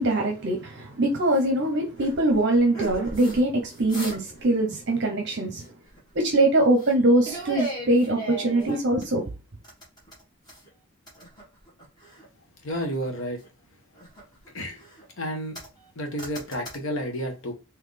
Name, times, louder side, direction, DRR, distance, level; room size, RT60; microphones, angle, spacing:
voice 1, 0.0-5.6 6.1-9.2, right 1 dB, 50° right, 0.7 m, -23 dB
sound 1, 1.3-1.5 2.0-3.4 3.7-4.4 4.7-4.9 5.6-6.3 6.8-7.0 7.2-9.2 9.6-10.7 11.1-12.3 12.7-13.5 13.9-15.0 15.5-15.9 16.2-16.8, right 2 dB, 20° left, 1.6 m, -38 dB
voice 2, 12.6-13.4 14.5-14.8 15.2-15.6 16.0-17.5, equal, 65° left, 1.0 m, -31 dB
4.0 x 2.9 x 3.3 m
head